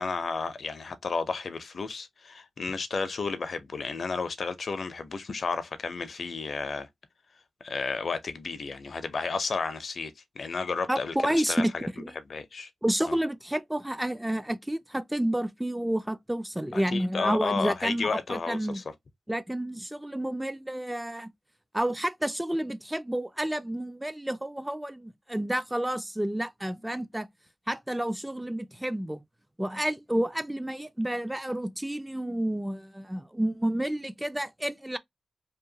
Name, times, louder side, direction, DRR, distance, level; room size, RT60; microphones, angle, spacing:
voice 1, 0.0-6.9 7.6-11.9 12.3-12.7 13.1-13.2 16.7-18.8, left 4 dB, 65° left, 0.5 m, -32 dB
voice 2, 10.9-11.7 12.0-12.1 12.8-18.8 19.3-21.3 21.7-27.3 27.7-29.2 29.6-35.0, right 1 dB, 10° right, 0.3 m, -30 dB
2.8 x 2.2 x 2.6 m
cardioid pair, 60°, 0 cm